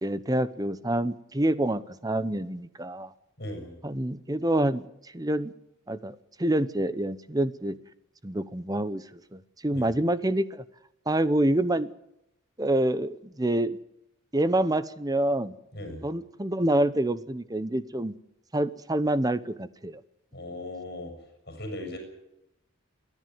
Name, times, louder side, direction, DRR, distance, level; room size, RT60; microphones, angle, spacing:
voice 1, 0.0-3.1 3.8-5.5 5.9-7.8 8.2-10.6 11.1-11.9 12.6-13.8 14.3-15.5 16.0-18.1 18.5-20.0, right 1 dB, 20° right, 15 dB, 0.8 m, -27 dB
voice 2, 3.4-3.8 9.7-9.9 15.7-16.0 20.3-21.1 21.5-22.0, left 1 dB, 50° left, 6 dB, 6.6 m, -38 dB
29.0 x 11.0 x 9.4 m, 0.82 s
head